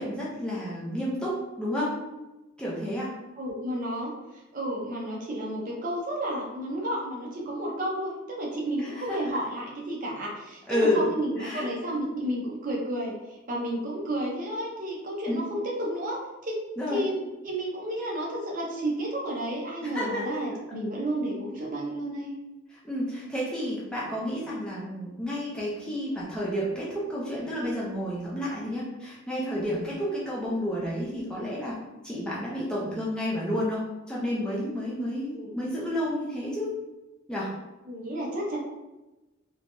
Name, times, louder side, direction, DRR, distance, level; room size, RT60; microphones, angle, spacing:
voice 1, 0.0-1.9 2.6-3.1 8.8-9.2 10.7-11.1 11.4-12.0 15.3-15.4 16.8-17.1 19.8-20.4 22.8-31.8 32.0-33.8 34.1-36.7 37.3-37.5, equal, 5° left, -7 dB, 0.5 m, -30 dB
voice 2, 3.4-4.1 4.5-8.1 8.4-16.2 16.4-16.6 16.9-22.3 35.4-35.5 37.9-38.6, right 1 dB, 40° right, -3 dB, 0.6 m, -31 dB
3.2 x 2.2 x 2.5 m, 1.0 s
head